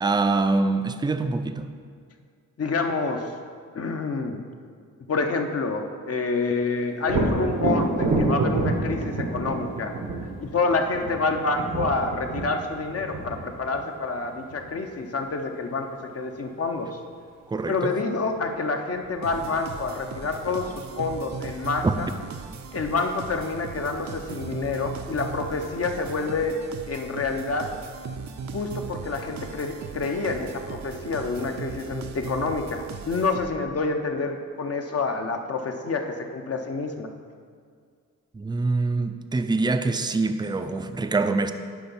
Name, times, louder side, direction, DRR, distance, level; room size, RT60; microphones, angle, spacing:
voice 1, 0.0-1.7 17.5-18.0 21.8-22.0 38.3-41.5, right 3 dB, 15° right, 9 dB, 0.4 m, -24 dB
voice 2, 2.6-3.2 3.7-4.4 5.1-9.9 10.4-17.0 17.7-22.1 22.7-26.6 26.9-27.7 28.5-37.1, left 3 dB, 50° left, 4 dB, 0.8 m, -28 dB
Thunder, 7.0-14.7 18.4-18.5 18.9-19.8, right 2 dB, 90° right, 1.2 m, -28 dB
sound 1, 19.2-33.8, right 5 dB, 60° right, 0.6 m, -38 dB
9.9 x 3.4 x 5.5 m, 2.1 s
cardioid pair, 80°, 31 cm